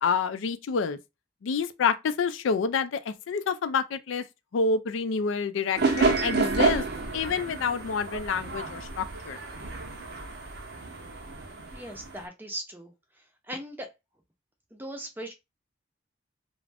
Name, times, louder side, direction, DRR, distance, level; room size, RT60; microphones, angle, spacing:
voice 1, 0.0-1.0 1.4-4.2 4.5-6.8 7.1-9.4, left 5 dB, 90° left, 0.4 m, -28 dB
sound 1, 5.8-12.3, right 4 dB, 60° right, 0.6 m, -29 dB
voice 2, 11.7-12.9 13.5-13.9 14.7-15.3, right 1 dB, 10° right, 0.5 m, -38 dB
2.4 x 2.0 x 3.3 m
head